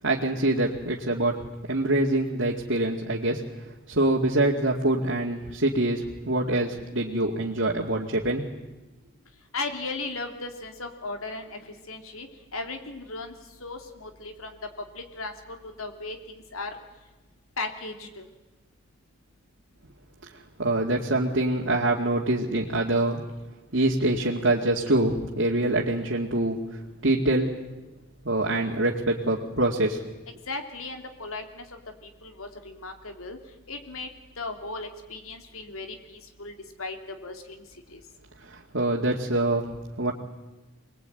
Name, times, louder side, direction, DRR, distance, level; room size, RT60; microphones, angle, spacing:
voice 1, 0.0-1.3 1.7-3.4 3.9-8.6 20.6-23.2 23.7-26.6 27.0-27.6 28.2-30.0 38.4-39.7 40.0-40.1, right 2 dB, 60° right, -2 dB, 2.3 m, -25 dB
voice 2, 9.5-11.6 11.9-12.3 12.5-13.3 13.6-14.6 14.9-15.3 15.8-16.7 17.6-18.2 30.5-31.6 32.2-33.4 33.7-34.1 34.4-36.5 36.8-37.0 37.2-37.6 37.9-38.0, left 3 dB, 85° left, 5 dB, 3.1 m, -36 dB
25.5 x 21.0 x 9.2 m, 1.1 s
head